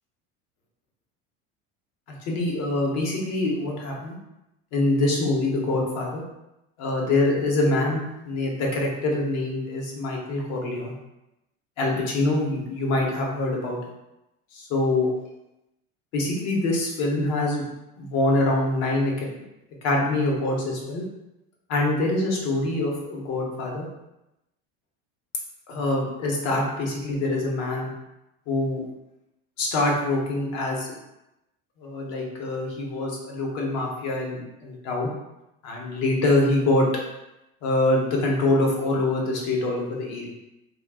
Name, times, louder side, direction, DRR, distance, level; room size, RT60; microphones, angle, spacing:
voice 1, 2.2-4.1 4.7-6.2 6.8-10.9 11.8-13.8 14.5-15.1 16.1-17.6 18.0-19.3 19.8-21.0 21.7-23.8 25.7-27.9 28.5-28.8 29.6-30.9 31.8-35.1 35.6-36.9 37.6-40.3, left 2 dB, 55° left, -1 dB, 0.8 m, -25 dB
2.3 x 2.2 x 3.5 m, 0.92 s
cardioid pair, 150°, 31 cm